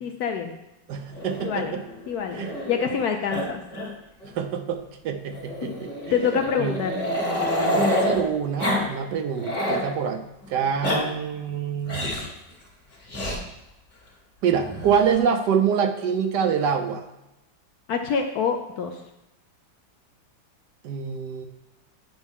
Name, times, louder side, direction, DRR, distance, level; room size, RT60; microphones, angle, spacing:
voice 1, 0.0-0.5 1.4-1.7 2.1-2.4 2.7-3.6 5.6-5.7 6.1-7.0 17.9-19.0, left 6 dB, 70° left, 4 dB, 0.9 m, -26 dB
voice 2, 0.9-1.8 2.3-2.5 4.4-6.3 6.6-6.8 7.7-10.2 10.5-12.1 14.4-17.0 20.8-21.5, right 7 dB, 70° right, 7 dB, 1.1 m, -26 dB
Growling, 1.1-3.0 3.3-3.5 3.7-3.9 4.2-4.3 5.3-8.2 8.6-8.8 9.2-9.9 10.6-11.0 11.9-12.3 13.1-13.4 14.5-15.2, left 1 dB, 30° left, 1.7 m, -28 dB
9.2 x 5.2 x 3.6 m, 0.91 s
omnidirectional pair, 2.1 m